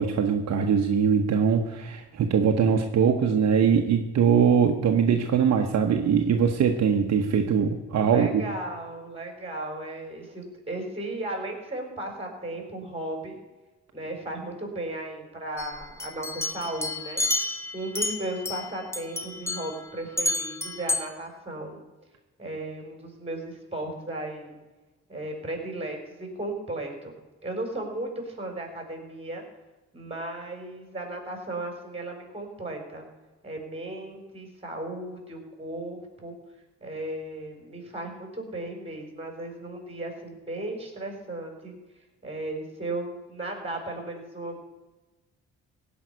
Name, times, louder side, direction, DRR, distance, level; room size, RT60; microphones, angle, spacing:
voice 1, 0.0-8.4, right 7 dB, 60° right, 4 dB, 1.2 m, -22 dB
voice 2, 7.9-13.4 13.9-17.5 17.7-21.8 22.4-24.6 25.1-27.1 27.4-29.4 29.9-33.0 33.4-36.4 36.8-41.7 42.2-44.6, right 1 dB, 20° right, 3 dB, 4.9 m, -35 dB
sound 1, 15.6-18.7 18.9-19.8 20.2-21.0, left 2 dB, 10° left, 1.3 m, -30 dB
16.5 x 5.7 x 9.6 m, 1.1 s
cardioid pair, 90°, 30 cm